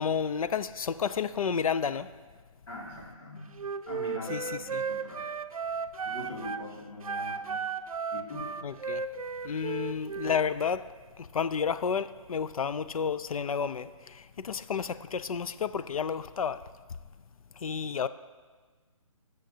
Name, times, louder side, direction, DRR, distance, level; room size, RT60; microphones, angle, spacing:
voice 1, 0.0-2.1 4.3-4.4 4.7-4.8 8.6-9.0 9.4-10.9 11.2-16.6 17.6-18.1, left 6 dB, 85° left, 14 dB, 0.5 m, -31 dB
voice 2, 2.7-3.6 3.9-5.3 6.0-7.6 8.1-8.5, left 2 dB, 55° left, -5 dB, 2.5 m, -42 dB
Wind instrument woodwind instrument, 3.6-6.6 7.0-10.4, right 5 dB, 90° right, 0.5 m, -35 dB
16.5 x 6.5 x 2.8 m, 1.4 s
hypercardioid pair, 160°, 18 cm